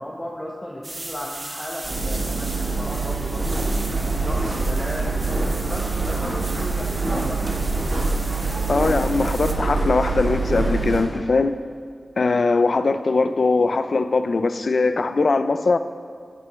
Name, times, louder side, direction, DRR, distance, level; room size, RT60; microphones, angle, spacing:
voice 1, 0.0-3.7 4.0-8.1, equal, 10° left, -2 dB, 0.9 m, -35 dB
sound 1, 0.8-9.5, right 2 dB, 45° right, 1.0 m, -37 dB
sound 2, 1.8-11.0, right 3 dB, 65° right, 2.3 m, -25 dB
voice 2, 8.7-11.6 12.2-15.8, left 3 dB, 70° left, 11 dB, 0.4 m, -21 dB
10.5 x 9.3 x 3.1 m, 2.1 s
wide cardioid pair, 65°, 0 cm